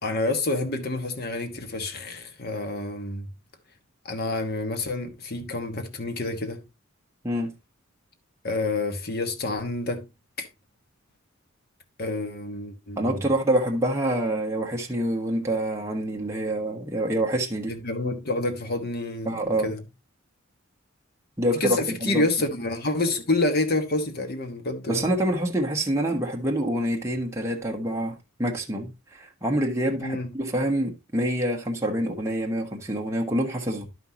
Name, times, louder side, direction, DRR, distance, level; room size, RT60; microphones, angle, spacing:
voice 1, 0.0-3.3 4.0-6.6 8.4-10.0 10.4-10.5 12.0-13.2 17.7-19.8 21.5-25.1 30.0-30.3, left 2 dB, 50° left, 1.2 m, -28 dB
voice 2, 13.0-17.7 19.2-19.7 21.4-22.2 24.9-33.8, right 1 dB, 15° right, 1.2 m, -26 dB
11.5 x 5.7 x 2.8 m
head